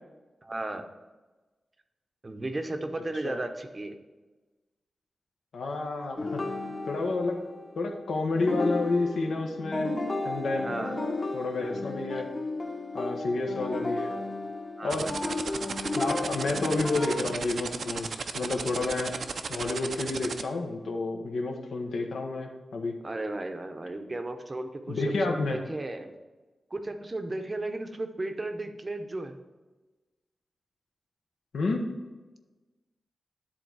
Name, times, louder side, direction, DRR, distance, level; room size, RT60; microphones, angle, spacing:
voice 1, 0.4-0.9 2.2-4.0 10.6-11.0 12.1-12.2 14.8-15.1 23.0-26.1 26.7-29.4, right 2 dB, 25° right, 6 dB, 0.7 m, -35 dB
voice 2, 5.5-6.4 6.9-7.4 7.7-9.9 10.2-10.7 11.3-12.3 12.9-14.1 14.8-15.1 15.9-19.2 19.5-23.0 24.9-25.6 31.5-31.9, left 3 dB, 85° left, 2 dB, 1.2 m, -30 dB
sound 1, 6.2-8.0 8.3-17.3, left 2 dB, 30° left, 1.0 m, -33 dB
sound 2, 14.9-20.4, right 5 dB, 65° right, 0.5 m, -34 dB
10.5 x 3.9 x 4.7 m, 1.2 s
wide cardioid pair, 130°, 0 cm